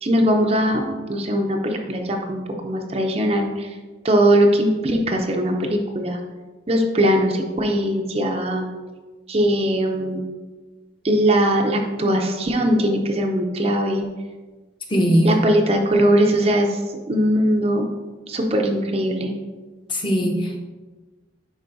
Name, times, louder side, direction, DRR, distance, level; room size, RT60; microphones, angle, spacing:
voice 1, 0.0-3.8 4.0-6.2 6.7-8.6 9.3-10.2 11.0-14.1 15.2-16.8 17.1-17.9 18.3-19.3, equal, 30° right, 2 dB, 0.5 m, -20 dB
voice 2, 14.9-15.3 19.9-20.6, equal, 25° left, 0 dB, 0.8 m, -19 dB
10.0 x 4.3 x 2.6 m, 1.3 s
head